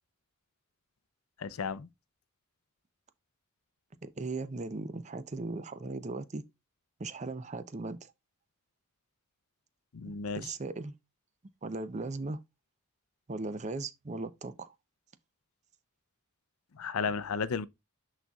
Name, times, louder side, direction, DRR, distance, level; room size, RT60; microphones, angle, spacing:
voice 1, 1.4-1.9 9.9-10.5 16.7-17.7, left 5 dB, 80° left, 0.5 m, -33 dB
voice 2, 4.0-6.4 7.0-8.1 10.0-10.9 11.6-12.4 13.3-14.7, right 3 dB, 35° right, 0.6 m, -38 dB
12.0 x 4.1 x 2.3 m
head